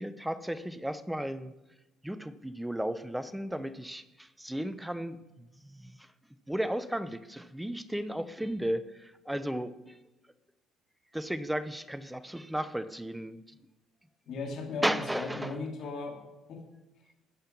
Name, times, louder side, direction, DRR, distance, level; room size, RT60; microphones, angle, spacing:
voice 1, 0.0-1.5 2.0-6.1 6.5-10.0 11.1-13.4 14.8-15.6, right 1 dB, 5° right, 13 dB, 0.7 m, -34 dB
voice 2, 14.3-16.2 16.5-16.6, left 4 dB, 65° left, 1 dB, 2.6 m, -37 dB
13.5 x 5.7 x 5.9 m, 1.0 s
supercardioid pair, 75°, 0 cm